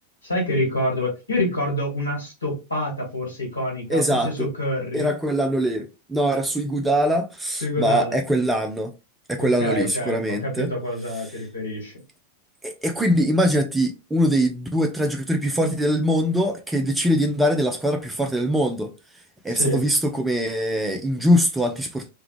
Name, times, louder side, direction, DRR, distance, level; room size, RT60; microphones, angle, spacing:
voice 1, 0.2-5.1 7.6-8.2 9.4-11.9 19.5-19.8, left 1 dB, 80° left, 1.8 m, -27 dB
voice 2, 3.9-4.5 4.9-8.9 9.3-10.7 12.6-18.9 19.4-22.1, equal, 10° right, 0.5 m, -22 dB
3.3 x 2.3 x 3.3 m
figure-of-eight pair, 90°, 0 cm